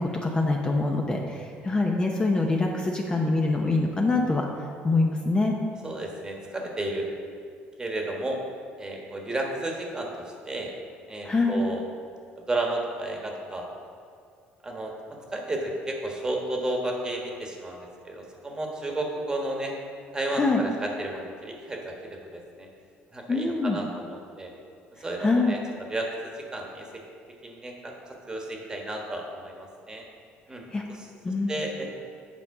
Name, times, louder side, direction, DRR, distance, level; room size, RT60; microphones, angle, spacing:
voice 1, 0.0-4.4 4.8-5.5 11.2-11.6 20.3-20.6 23.3-23.8 25.2-25.6 30.7-30.8 31.2-31.6, left 3 dB, 20° left, 0 dB, 0.7 m, -24 dB
voice 2, 5.8-7.1 7.8-8.4 8.8-10.7 11.1-11.8 12.4-13.7 14.6-19.7 20.1-22.7 23.1-24.5 25.0-25.6 25.9-26.9 27.4-30.0 30.5-31.1 31.5-31.9, right 1 dB, 20° right, 1 dB, 1.3 m, -32 dB
8.4 x 5.3 x 4.8 m, 2.4 s
cardioid pair, 105°, 4 cm